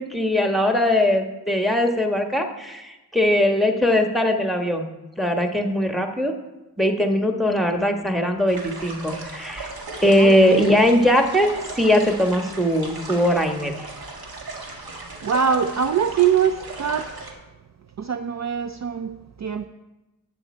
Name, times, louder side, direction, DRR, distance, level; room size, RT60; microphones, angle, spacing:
voice 1, 0.0-4.9 5.2-6.3 6.8-9.7 10.0-13.7, left 1 dB, ahead, 4 dB, 1.3 m, -20 dB
sound 1, 8.5-17.3, right 3 dB, 65° right, 1.9 m, -37 dB
voice 2, 10.2-10.8 15.2-17.1 18.0-19.7, right 7 dB, 45° right, 9 dB, 0.5 m, -23 dB
11.5 x 8.4 x 4.4 m, 1.0 s
cardioid pair, 70°, 40 cm